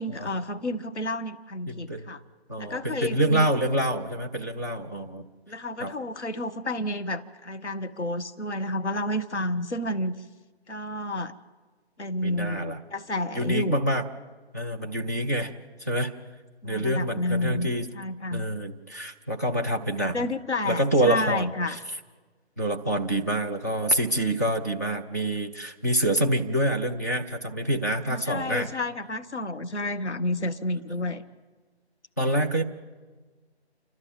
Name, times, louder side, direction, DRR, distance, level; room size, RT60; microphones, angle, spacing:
voice 1, 0.0-2.2 2.6-3.5 5.5-10.1 10.7-11.3 12.0-13.8 16.6-18.5 20.1-21.8 28.1-31.2, left 1 dB, 85° left, 10 dB, 1.3 m, -30 dB
voice 2, 1.7-2.1 2.5-5.3 5.8-5.9 12.2-12.8 13.3-14.0 14.5-15.5 15.8-16.1 16.6-17.9 18.3-20.1 20.6-21.8 22.6-28.7 32.2-32.6, right 1 dB, 15° left, 0 dB, 0.7 m, -26 dB
29.5 x 12.5 x 7.3 m, 1.4 s
figure-of-eight pair, 165°, 33 cm